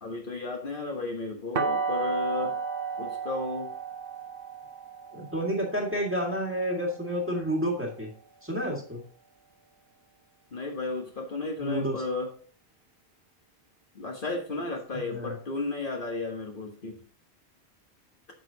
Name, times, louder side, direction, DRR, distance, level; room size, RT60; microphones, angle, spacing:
voice 1, 0.0-2.6 3.0-3.7 10.5-12.3 13.9-17.0, left 3 dB, 50° left, 1 dB, 1.3 m, -33 dB
sound 1, 1.6-7.4, right 5 dB, 55° right, 1.0 m, -33 dB
voice 2, 5.1-8.1 8.4-9.0 11.6-11.9 14.9-15.3, equal, 10° right, -1 dB, 1.8 m, -30 dB
8.8 x 6.4 x 2.8 m, 0.42 s
omnidirectional pair, 1.2 m